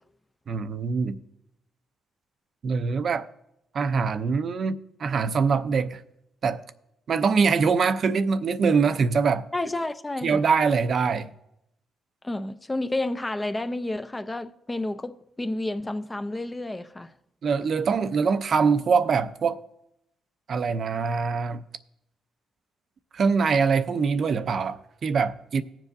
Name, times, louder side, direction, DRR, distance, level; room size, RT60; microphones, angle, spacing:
voice 1, 0.5-1.2 2.6-3.3 3.7-6.0 6.4-6.6 7.1-9.5 10.2-11.3 17.4-19.6 20.5-21.6 23.1-25.6, right 5 dB, 50° right, 0.6 m, -23 dB
voice 2, 9.5-10.4 12.2-17.1, left 2 dB, 15° left, 0.5 m, -30 dB
18.5 x 7.3 x 2.6 m
cardioid pair, 90°, 0 cm